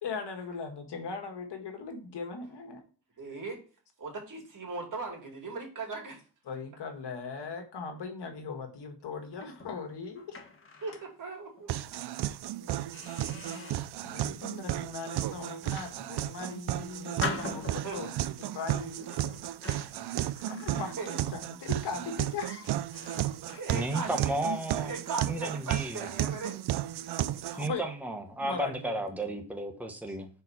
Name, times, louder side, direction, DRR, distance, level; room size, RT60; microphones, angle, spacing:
voice 1, 0.0-2.8 6.5-10.4 12.6-12.7 14.0-18.1 18.4-19.1 20.5-22.8 23.5-23.8 27.5-27.8 28.4-28.9, left 4 dB, 70° left, 5 dB, 1.7 m, -39 dB
voice 2, 3.2-3.6 4.0-6.2 10.8-11.7 14.1-14.6 17.8-18.0 19.8-19.9 20.1-20.5 21.0-21.1 23.6-24.3 24.7-26.6, right 4 dB, 50° right, 1 dB, 2.6 m, -39 dB
sound 1, 9.3-11.1 11.6-11.7 12.3-12.5 12.9-14.0 14.5-14.9 15.5-16.6 17.2-18.2 19.0-21.3 21.6-21.9 22.4-22.5 22.9-23.4, left 3 dB, 30° left, 1.5 m, -42 dB
sound 2, 11.7-27.7, right 13 dB, 70° right, 0.5 m, -34 dB
voice 3, 23.7-24.9 25.3-26.0 27.6-30.3, right 1 dB, 5° right, 3 dB, 1.2 m, -33 dB
5.9 x 4.6 x 4.1 m, 0.38 s
cardioid pair, 95°, 41 cm